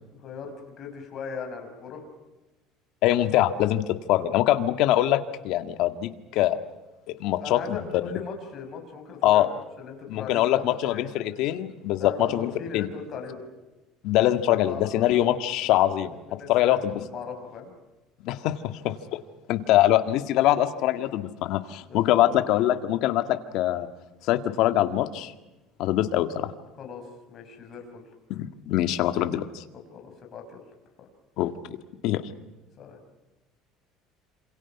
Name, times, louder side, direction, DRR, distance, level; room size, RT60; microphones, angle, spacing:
voice 1, 0.1-2.0 4.1-4.3 7.4-9.5 9.8-11.1 12.0-13.4 14.5-15.4 16.3-17.7 21.9-22.2 26.8-28.0 29.9-30.6 32.8-33.0, left 5 dB, 30° left, 3 dB, 5.9 m, -38 dB
voice 2, 3.0-6.6 7.2-8.1 9.2-9.5 10.1-12.9 14.0-16.2 16.5-17.0 18.2-18.9 19.5-23.9 24.3-25.3 25.8-26.5 28.3-29.6 31.4-31.8 32.0-32.2, left 13 dB, 55° left, 9 dB, 1.8 m, -23 dB
27.5 x 27.5 x 6.0 m, 1.1 s
cardioid pair, 165°, 0 cm